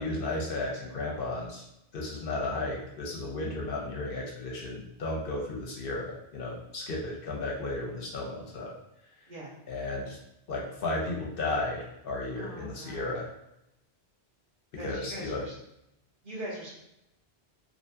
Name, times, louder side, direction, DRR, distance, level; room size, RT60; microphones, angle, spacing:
voice 1, 0.0-1.6 1.9-8.7 9.7-10.2 10.5-13.3 14.8-15.5, left 2 dB, 65° left, -2 dB, 0.7 m, -34 dB
voice 2, 12.3-13.1 14.8-15.5 16.2-16.7, right 1 dB, 55° right, -6 dB, 1.0 m, -41 dB
2.7 x 2.6 x 2.2 m, 0.83 s
omnidirectional pair, 1.1 m